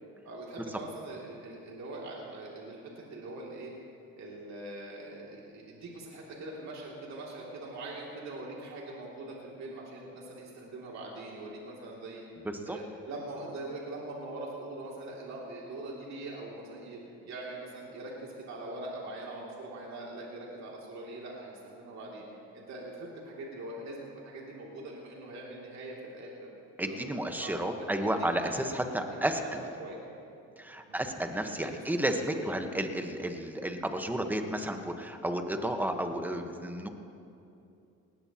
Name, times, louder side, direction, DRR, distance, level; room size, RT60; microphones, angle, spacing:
voice 1, 0.2-3.7 4.2-12.2 12.6-17.0 17.2-22.2 22.5-26.5 26.8-28.6 29.2-30.0 30.9-31.0 31.4-32.4, right 2 dB, 55° right, -3 dB, 2.8 m, -42 dB
voice 2, 12.4-12.8 26.8-29.6 30.6-36.9, right 1 dB, 5° right, 5 dB, 1.2 m, -32 dB
19.5 x 17.0 x 3.0 m, 2.6 s
supercardioid pair, 90°, 33 cm